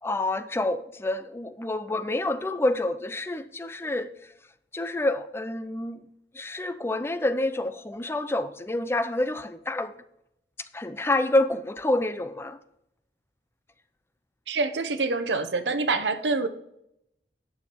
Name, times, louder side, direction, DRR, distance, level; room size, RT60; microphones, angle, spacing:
voice 1, 0.0-4.3 4.7-6.1 6.3-9.9 10.7-12.6, left 2 dB, 15° left, 0.4 m, -28 dB
voice 2, 14.5-16.5, right 3 dB, 85° right, 0.9 m, -26 dB
9.6 x 7.1 x 4.5 m
head